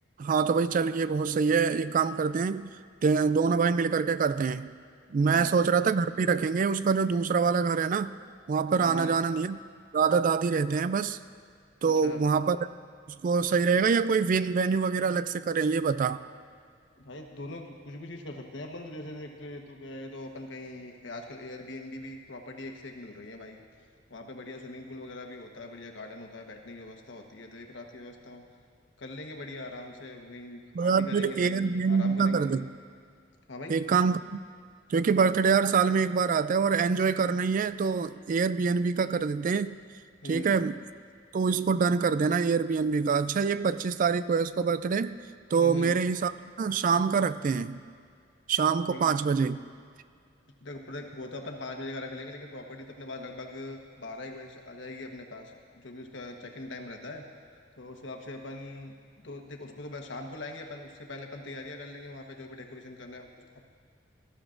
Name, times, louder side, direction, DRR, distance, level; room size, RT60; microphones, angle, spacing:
voice 1, 0.2-2.7 3.0-4.7 5.1-8.2 8.5-9.6 9.9-11.2 11.8-12.7 13.2-16.2 30.7-32.6 33.7-34.5 34.9-39.8 40.2-40.8 41.3-45.2 45.5-47.8 48.5-49.6, right 5 dB, 45° right, 14 dB, 0.3 m, -25 dB
voice 2, 5.2-5.6 8.8-9.2 11.8-12.2 17.0-23.6 24.1-28.4 29.0-32.5 33.5-33.8 40.2-40.6 45.6-46.0 48.9-49.0 50.6-57.3 57.8-63.7, left 2 dB, 70° left, 3 dB, 1.3 m, -41 dB
20.5 x 12.5 x 2.6 m, 2.3 s
head